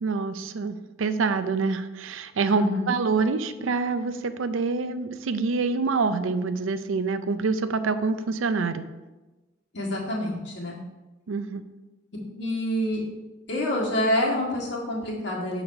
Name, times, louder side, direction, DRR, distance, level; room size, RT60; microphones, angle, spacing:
voice 1, 0.0-8.8 11.3-11.6, right 4 dB, 90° right, 11 dB, 0.5 m, -26 dB
voice 2, 2.5-2.9 9.7-10.8 12.4-13.1 13.5-15.6, left 1 dB, 65° left, -3 dB, 1.9 m, -27 dB
6.9 x 4.0 x 5.8 m, 1.1 s
head